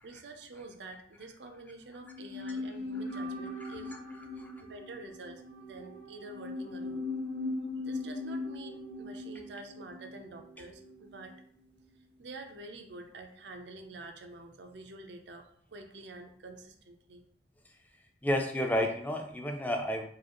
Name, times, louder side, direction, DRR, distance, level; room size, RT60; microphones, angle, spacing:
voice 1, 0.0-3.9 4.6-7.1 7.8-11.3 12.2-17.2, right 2 dB, 85° right, 5 dB, 0.6 m, -48 dB
sound 1, 2.0-11.3 11.6-11.7, left 2 dB, 80° left, 1.3 m, -39 dB
voice 2, 18.2-20.0, left 1 dB, 10° left, 4 dB, 0.4 m, -31 dB
4.8 x 2.4 x 2.9 m, 0.63 s
head